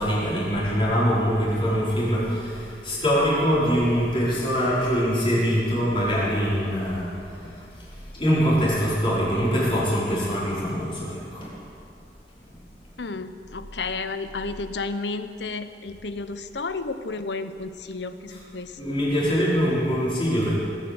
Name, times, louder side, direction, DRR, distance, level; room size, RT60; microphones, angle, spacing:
voice 1, 0.0-11.5 18.3-18.4 18.8-20.6, equal, 30° left, -7 dB, 5.1 m, -23 dB
voice 2, 13.0-18.8, left 3 dB, 80° left, 11 dB, 0.9 m, -32 dB
20.0 x 9.1 x 7.9 m, 2.5 s
head